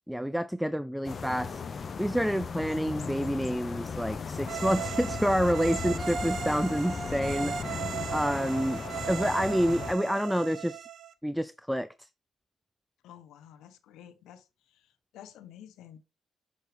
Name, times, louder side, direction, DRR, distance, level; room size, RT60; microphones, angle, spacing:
voice 1, 0.1-1.6 2.0-7.8 8.1-10.9 11.2-12.1, equal, ahead, 0.3 m, -28 dB
sound 1, 1.0-9.9, left 5 dB, 40° left, 0.7 m, -36 dB
sound 2, 4.5-11.1, right 8 dB, 65° right, 0.7 m, -37 dB
voice 2, 13.0-16.0, left 10 dB, 85° left, 1.0 m, -51 dB
6.3 x 5.8 x 3.4 m
cardioid pair, 90°, 0 cm